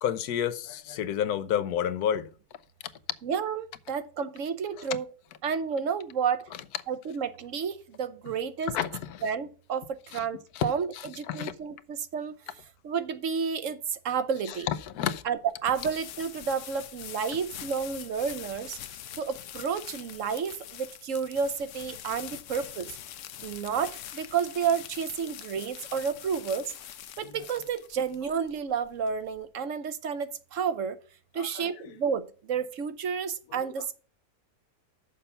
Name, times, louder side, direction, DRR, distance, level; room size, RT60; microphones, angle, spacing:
voice 1, 0.0-2.3 8.7-9.2 10.1-10.2 10.6-10.7 11.3-11.5 14.7-15.2 27.2-27.3 31.4-31.7, left 9 dB, 90° left, 1.2 m, -30 dB
voice 2, 3.2-5.1 5.4-6.5 6.9-8.7 9.2-12.3 12.8-14.7 15.2-18.8 19.2-22.9 23.4-26.7 27.2-31.0 31.3-33.9, right 6 dB, 60° right, 1.0 m, -31 dB
sound 1, 14.5-29.4, left 11 dB, 65° left, 0.9 m, -44 dB
6.8 x 5.6 x 6.6 m
omnidirectional pair, 1.6 m